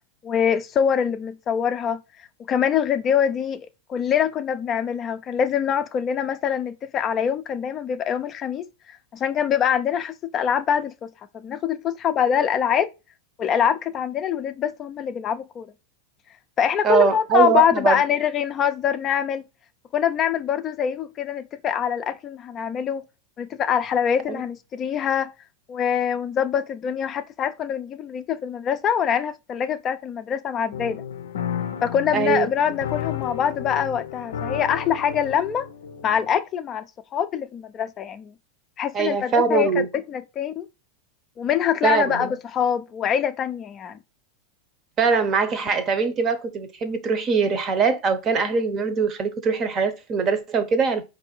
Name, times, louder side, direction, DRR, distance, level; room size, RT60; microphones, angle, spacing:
voice 1, 0.2-2.0 2.5-11.1 11.3-12.9 13.4-15.7 16.6-19.4 19.9-23.0 23.4-25.3 25.7-31.0 31.8-35.7 36.0-36.8 37.1-38.3 38.8-40.7 41.4-44.0, left 8 dB, 30° left, 0.4 m, -24 dB
voice 2, 16.8-18.0 24.3-24.4 32.1-32.5 38.9-39.9 41.8-42.3 45.0-51.0, right 5 dB, 30° right, 0.8 m, -22 dB
sound 1, 30.7-36.4, left 8 dB, 90° left, 0.5 m, -32 dB
4.4 x 2.7 x 4.3 m
supercardioid pair, 130°, 0 cm